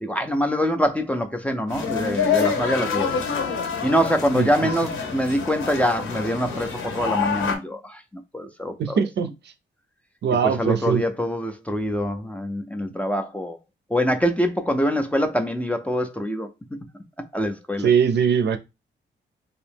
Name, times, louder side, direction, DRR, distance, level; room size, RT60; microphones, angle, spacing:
voice 1, 0.0-3.1 3.8-8.0 8.3-9.0 10.4-13.6 13.9-16.5 17.3-17.9, equal, 5° left, 0.4 m, -24 dB
sound 1, 1.7-7.5, left 6 dB, 85° left, 1.0 m, -27 dB
voice 2, 8.8-9.3 10.2-11.0 17.8-18.6, right 7 dB, 60° right, 0.5 m, -21 dB
2.9 x 2.7 x 3.4 m
wide cardioid pair, 145°, 20 cm